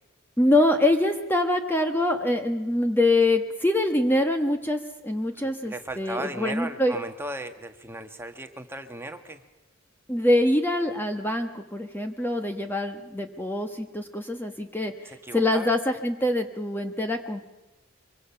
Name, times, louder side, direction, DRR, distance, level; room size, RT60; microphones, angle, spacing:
voice 1, 0.4-7.0 10.1-14.9 15.3-17.4, left 1 dB, 10° left, 5 dB, 1.2 m, -24 dB
voice 2, 5.4-9.4 15.0-15.7, right 1 dB, 10° right, 6 dB, 1.4 m, -36 dB
24.5 x 24.5 x 5.8 m, 1.1 s
head